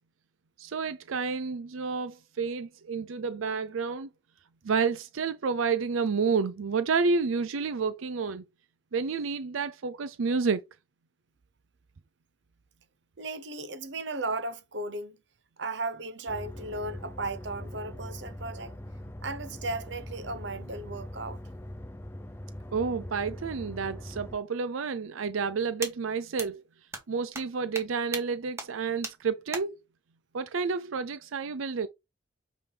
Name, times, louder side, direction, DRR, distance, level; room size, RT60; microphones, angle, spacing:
voice 1, 0.6-4.1 4.6-8.4 8.9-10.6 22.7-26.6 27.1-29.8 30.3-31.9, right 5 dB, 90° right, 0.5 m, -30 dB
voice 2, 13.2-15.2 15.6-18.7 19.2-21.4, right 2 dB, 60° right, 0.9 m, -35 dB
sound 1, 16.3-24.4, left 1 dB, 10° left, 0.6 m, -42 dB
sound 2, 25.8-25.9 26.4-26.5 26.9-27.0 27.3-27.4 27.7-27.9 28.1-28.2 28.6-28.7 29.0-29.1 29.5-29.6, right 2 dB, 15° right, 1.5 m, -34 dB
7.9 x 5.0 x 3.4 m
head